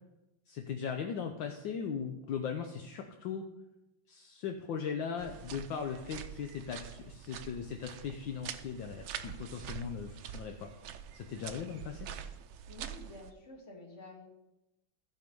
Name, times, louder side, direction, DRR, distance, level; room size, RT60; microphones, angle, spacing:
voice 1, 0.5-3.4 4.1-10.7 11.1-12.1, left 6 dB, 70° left, 4 dB, 1.4 m, -38 dB
sound 1, 5.2-13.3, right 10 dB, 80° right, 1.5 m, -45 dB
voice 2, 12.6-14.3, left 1 dB, 35° left, 0 dB, 2.3 m, -50 dB
15.0 x 5.3 x 5.3 m, 0.94 s
omnidirectional pair, 2.2 m